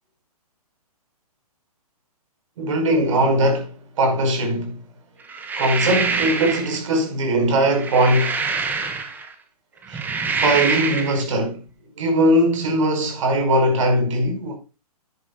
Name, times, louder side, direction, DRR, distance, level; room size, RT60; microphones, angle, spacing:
voice 1, 2.6-4.8 5.6-8.4 9.9-10.0 10.3-11.6 12.0-14.6, right 1 dB, 50° right, 5.8 m, -20 dB
sound 1, 5.3-6.8 7.6-9.3 9.8-11.2, right 4 dB, 10° right, 1.2 m, -25 dB
10.0 x 10.0 x 4.2 m
hypercardioid pair, 150°, 20 cm